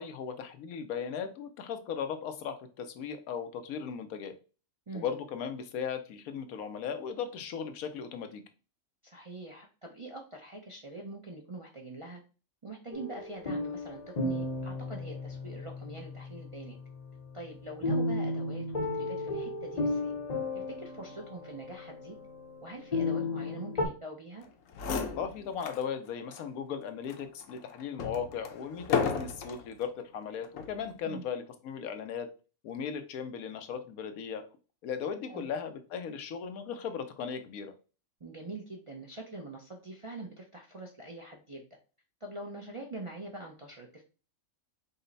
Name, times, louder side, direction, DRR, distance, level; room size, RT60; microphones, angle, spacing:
voice 1, 0.0-4.3 4.9-8.4 25.2-32.3 32.6-34.4 34.8-37.7, left 7 dB, 90° left, 8 dB, 1.1 m, -37 dB
voice 2, 9.0-12.2 12.6-16.8 17.3-18.7 18.9-20.1 20.5-22.2 22.6-24.4 31.0-31.3 35.3-35.5 38.2-41.8 42.2-44.0, right 2 dB, 40° right, -1 dB, 0.4 m, -44 dB
sound 1, 12.9-23.9, left 2 dB, 40° left, 0.6 m, -35 dB
sound 2, 24.4-24.5 24.7-25.9 26.3-26.4 27.1-29.7 30.4-30.8, left 6 dB, 70° left, 1.0 m, -34 dB
5.3 x 2.1 x 3.9 m, 0.34 s
omnidirectional pair, 1.5 m